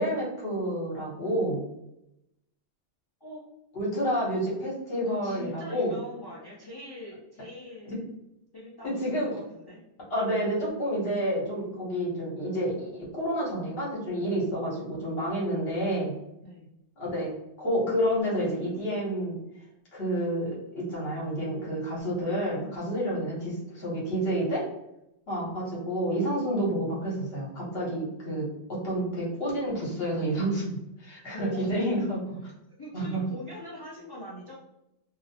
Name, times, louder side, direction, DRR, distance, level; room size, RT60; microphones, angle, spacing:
voice 1, 0.0-1.6 3.7-6.0 7.8-7.9 8.8-9.3 10.1-16.2 17.0-19.4 19.9-24.6 25.3-32.2 32.9-33.2, equal, 60° left, -5 dB, 1.2 m, -29 dB
voice 2, 5.0-8.1 8.5-9.8 16.4-16.7 31.3-32.1 32.8-34.5, left 1 dB, 35° left, -6 dB, 0.4 m, -42 dB
2.7 x 2.0 x 2.7 m, 0.85 s
omnidirectional pair, 1.2 m